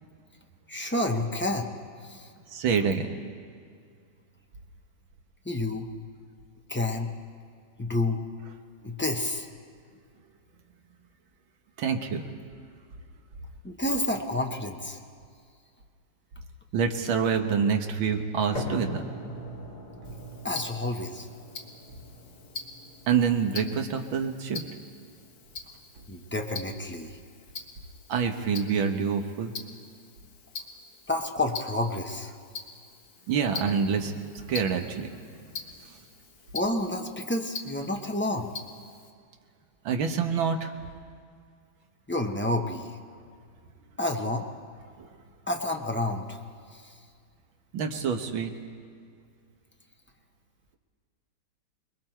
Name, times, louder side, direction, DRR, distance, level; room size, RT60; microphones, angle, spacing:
voice 1, 0.7-1.7 2.1-2.2 5.5-5.9 6.7-7.1 7.8-8.2 8.8-9.5 13.6-15.0 20.4-21.3 26.1-27.1 31.1-32.3 36.5-38.5 42.1-42.9 44.0-44.4 45.5-46.4, left 1 dB, 10° left, 2 dB, 0.5 m, -29 dB
voice 2, 2.5-3.1 8.8-9.0 11.8-12.3 16.7-19.0 23.1-24.6 28.1-29.5 33.3-34.2 34.5-35.1 39.9-40.7 47.7-48.5, right 6 dB, 90° right, 5 dB, 2.0 m, -26 dB
sound 1, 18.6-26.6, left 1 dB, 55° left, 3.5 m, -42 dB
Tick-tock, 20.0-39.1, left 4 dB, 75° left, 2.3 m, -44 dB
28.5 x 21.0 x 4.5 m, 2.2 s
omnidirectional pair, 2.1 m